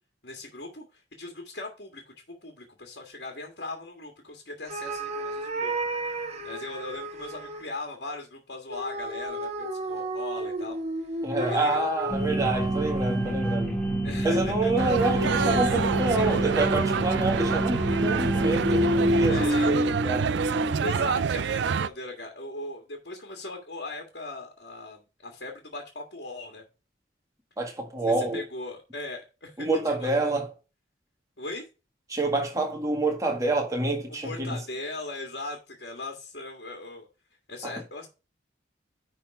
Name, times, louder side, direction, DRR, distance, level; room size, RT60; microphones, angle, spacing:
voice 1, 0.2-2.0 2.3-5.8 6.0-11.9 14.0-14.9 15.2-15.6 19.3-19.9 20.8-26.6 28.0-30.3 31.4-31.7 34.1-37.1 37.5-38.1, left 2 dB, 60° left, 1.8 m, -39 dB
sound 1, 4.7-7.7 8.7-13.5 14.9-21.0, equal, 35° right, 1.3 m, -30 dB
voice 2, 11.2-13.7 14.2-20.3 27.6-28.4 29.6-30.5 32.1-34.6 37.6-37.7, right 2 dB, 20° right, 1.7 m, -27 dB
sound 2, 12.1-19.5, right 2 dB, 5° left, 1.8 m, -28 dB
sound 3, 14.8-21.9, right 6 dB, 70° right, 0.4 m, -28 dB
10.0 x 4.0 x 4.7 m
head